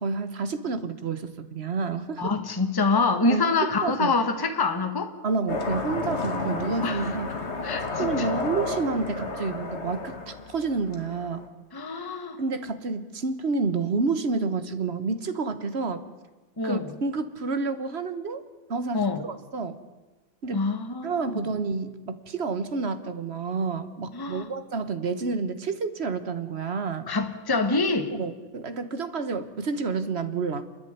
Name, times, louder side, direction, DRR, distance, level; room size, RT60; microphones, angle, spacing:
voice 1, 0.0-2.3 3.3-3.4 3.8-4.1 5.2-7.3 8.0-11.4 12.4-16.1 16.6-18.4 18.7-19.8 20.4-20.7 21.0-27.1 28.1-30.7, right 4 dB, 40° right, 11 dB, 1.3 m, -29 dB
voice 2, 2.2-5.1 6.8-7.2 7.6-8.3 11.7-12.4 16.6-16.9 18.9-19.2 20.5-21.4 24.1-24.5 27.1-28.1, left 3 dB, 15° left, 7 dB, 1.3 m, -26 dB
sound 1, 5.5-11.5, left 3 dB, 35° left, 2.0 m, -32 dB
29.5 x 10.5 x 9.5 m, 1.3 s
omnidirectional pair, 2.1 m